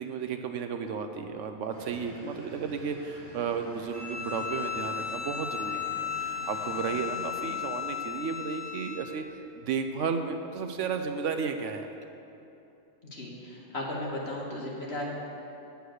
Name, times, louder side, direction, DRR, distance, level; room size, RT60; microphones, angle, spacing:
voice 1, 0.0-9.2 9.5-11.9, right 6 dB, 70° right, 6 dB, 0.9 m, -33 dB
sound 1, 1.7-8.0, equal, 45° right, 2.1 m, -48 dB
Bowed string instrument, 3.9-9.1, left 8 dB, 10° left, 0.8 m, -35 dB
voice 2, 13.1-15.0, left 1 dB, 50° left, -3 dB, 2.0 m, -35 dB
9.4 x 7.9 x 6.4 m, 2.8 s
omnidirectional pair, 1.4 m